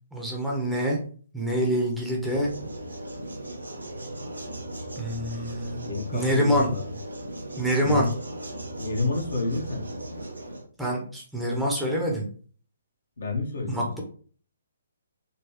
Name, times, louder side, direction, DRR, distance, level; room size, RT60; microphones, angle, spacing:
voice 1, 0.1-1.0 1.3-2.5 5.0-5.9 6.1-6.7 7.6-8.1 10.8-12.3 13.7-14.0, equal, ahead, -2 dB, 0.7 m, -26 dB
sound 1, 2.2-10.6, right 1 dB, 80° right, 0.7 m, -37 dB
voice 2, 5.8-6.9 7.8-8.1 8.8-9.8 13.2-14.0, left 3 dB, 65° left, 1 dB, 1.0 m, -29 dB
3.9 x 2.2 x 3.0 m, 0.43 s
figure-of-eight pair, 135°, 0 cm